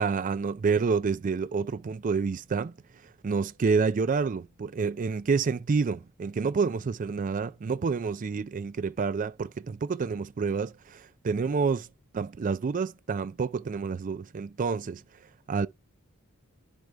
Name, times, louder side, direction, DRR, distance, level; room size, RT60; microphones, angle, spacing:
voice 1, 0.0-2.7 3.2-11.9 12.1-15.0 15.5-15.7, right 5 dB, 40° right, 0.4 m, -28 dB
11.5 x 4.5 x 2.3 m
head